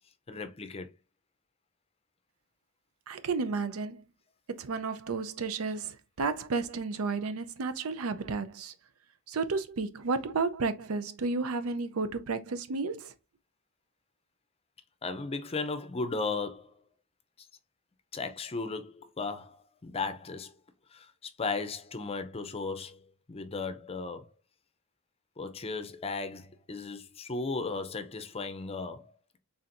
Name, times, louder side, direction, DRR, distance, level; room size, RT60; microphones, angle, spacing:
voice 1, 0.3-0.9 15.0-16.8 18.1-20.5 20.9-24.3 25.4-29.1, left 3 dB, 30° left, 0.5 m, -36 dB
voice 2, 3.1-4.1 4.5-8.7 9.3-13.1, right 4 dB, 85° right, 0.5 m, -32 dB
4.2 x 3.5 x 2.5 m
head